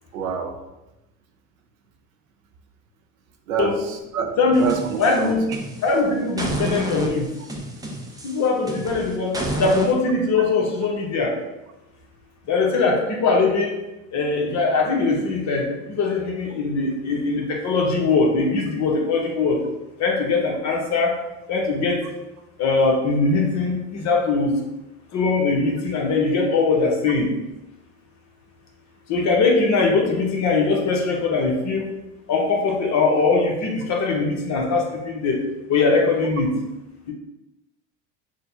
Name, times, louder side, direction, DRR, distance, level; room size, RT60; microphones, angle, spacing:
voice 1, 0.1-0.6 3.5-4.3 4.6-5.4, right 6 dB, 85° right, 3 dB, 0.7 m, -27 dB
voice 2, 4.4-4.7 5.0-5.4 5.8-7.3 8.2-11.3 12.5-13.8 14.1-19.6 20.0-21.2 21.5-22.0 22.6-24.5 25.1-27.3 29.1-31.8 32.3-35.4 35.7-36.5 37.1-37.2, left 3 dB, 45° left, 0 dB, 1.1 m, -21 dB
sound 1, 4.5-6.0 6.4-9.9, right 1 dB, 10° right, 0.6 m, -29 dB
6.2 x 2.3 x 2.8 m, 0.96 s
hypercardioid pair, 85°, 40 cm